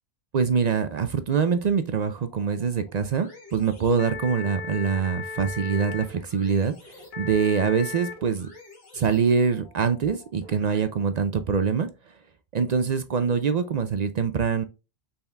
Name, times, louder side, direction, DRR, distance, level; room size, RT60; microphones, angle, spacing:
voice 1, 0.3-8.5 8.9-11.9 12.5-14.6, right 6 dB, 55° right, 10 dB, 0.5 m, -24 dB
sound 1, 2.2-10.8, left 4 dB, 65° left, 1.6 m, -40 dB
5.5 x 4.2 x 2.2 m, 0.28 s
omnidirectional pair, 1.1 m